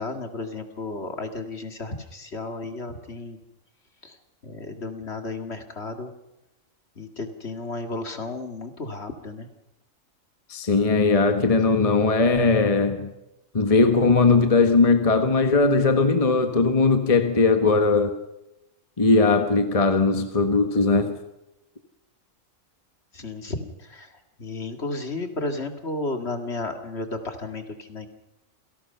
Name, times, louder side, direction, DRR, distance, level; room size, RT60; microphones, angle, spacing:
voice 1, 0.0-3.4 4.0-4.2 4.4-6.1 7.0-9.5 23.1-28.1, left 2 dB, 50° left, 6 dB, 2.4 m, -33 dB
voice 2, 10.5-13.1 13.5-18.2 19.0-21.2, left 3 dB, 25° left, 6 dB, 1.4 m, -19 dB
28.0 x 18.0 x 5.7 m, 0.93 s
omnidirectional pair, 1.4 m